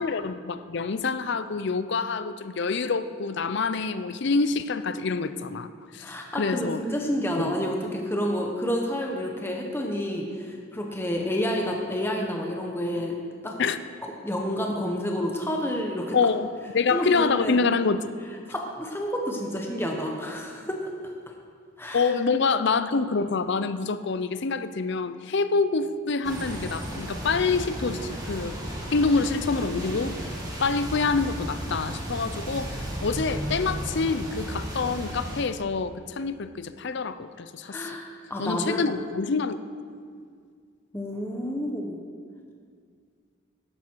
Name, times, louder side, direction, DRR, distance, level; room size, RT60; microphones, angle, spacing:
voice 1, 0.0-5.7 5.9-6.8 7.4-7.5 13.6-13.8 16.1-16.5 16.7-18.1 21.9-28.6 28.9-30.2 30.6-37.9 38.4-39.6, left 4 dB, 60° left, 12 dB, 0.6 m, -26 dB
voice 2, 6.0-13.2 13.4-13.6 14.2-16.2 16.9-17.7 18.5-20.8 21.8-22.1 37.7-38.0 38.3-38.9 40.9-42.0, equal, 10° left, 0 dB, 1.0 m, -29 dB
sound 1, 26.2-35.4, right 1 dB, 20° right, 2.1 m, -34 dB
13.0 x 11.0 x 4.6 m, 2.1 s
head